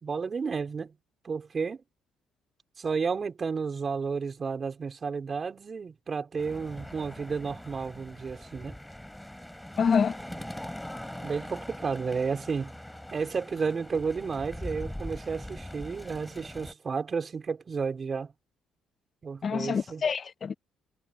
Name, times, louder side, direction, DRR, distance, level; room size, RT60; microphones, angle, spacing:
voice 1, 0.0-0.9 1.2-1.8 2.8-8.8 11.2-12.7 13.1-18.3 19.2-20.0, right 5 dB, 35° right, 5.0 m, -32 dB
sound 1, 6.4-16.7, left 1 dB, 5° left, 4.5 m, -42 dB
voice 2, 9.8-10.2 19.4-20.5, left 6 dB, 40° left, 0.8 m, -26 dB
cardioid pair, 110°, 0 cm